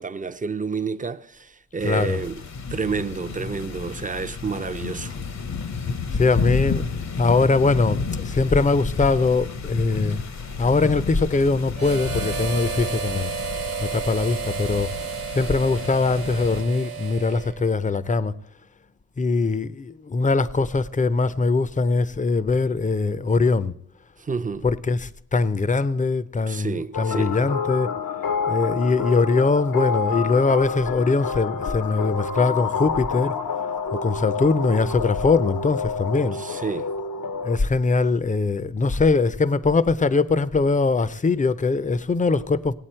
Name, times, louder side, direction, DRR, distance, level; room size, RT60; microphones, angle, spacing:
voice 1, 0.0-2.4 2.7-5.2 24.2-24.7 26.5-27.3 36.3-36.9, right 4 dB, 25° right, 0.5 m, -29 dB
sound 1, 1.8-16.6, left 5 dB, 55° left, 0.8 m, -31 dB
voice 2, 1.8-2.2 6.1-6.8 7.2-10.2 10.6-13.3 13.8-14.9 15.3-18.3 19.2-23.7 24.6-27.9 28.5-33.3 33.9-36.4 37.4-42.7, left 3 dB, 25° left, 0.5 m, -22 dB
Harmonica, 11.8-17.8, right 6 dB, 75° right, 0.9 m, -32 dB
sound 2, 26.9-37.6, left 5 dB, 80° left, 1.0 m, -28 dB
18.0 x 8.4 x 4.4 m
wide cardioid pair, 90°, 33 cm